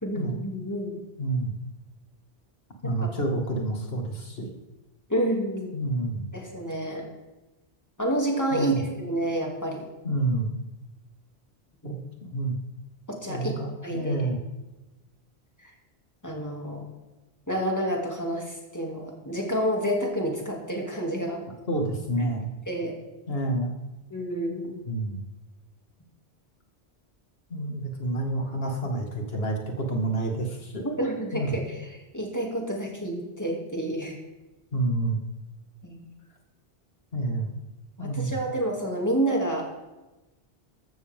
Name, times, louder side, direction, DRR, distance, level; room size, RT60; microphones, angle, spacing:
voice 1, 0.0-1.0 2.8-2.9 5.1-5.8 6.3-7.1 8.0-9.8 11.8-12.0 13.1-14.2 15.6-15.7 16.2-16.8 17.5-21.4 22.7-23.0 24.1-24.8 31.0-31.8 32.1-34.2 35.8-36.0 38.0-39.7, right 1 dB, 15° left, -1 dB, 2.7 m, -29 dB
voice 2, 1.2-1.5 2.8-4.5 5.7-6.3 8.5-8.8 10.0-10.6 11.8-12.6 13.3-14.4 21.7-22.5 23.3-23.7 24.9-25.2 27.5-30.9 31.3-31.6 34.7-35.2 37.1-37.5 38.0-38.4, right 2 dB, 70° left, 2 dB, 2.3 m, -28 dB
15.0 x 13.0 x 3.7 m, 1.0 s
omnidirectional pair, 1.1 m